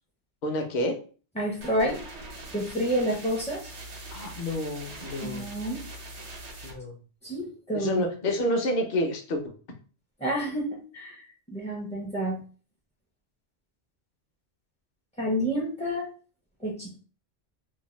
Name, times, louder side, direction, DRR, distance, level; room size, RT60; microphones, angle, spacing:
voice 1, 0.4-1.0 4.1-5.5 6.6-6.9 7.7-9.5, left 1 dB, 50° left, 3 dB, 0.7 m, -28 dB
voice 2, 1.4-2.0 2.5-3.6 5.2-5.9 7.2-8.0 10.2-12.4 15.2-16.1 16.6-17.0, equal, 10° left, -2 dB, 0.3 m, -29 dB
sound 1, 1.6-6.7, right 2 dB, 85° right, 1.1 m, -42 dB
2.7 x 2.1 x 3.0 m, 0.38 s
omnidirectional pair, 1.1 m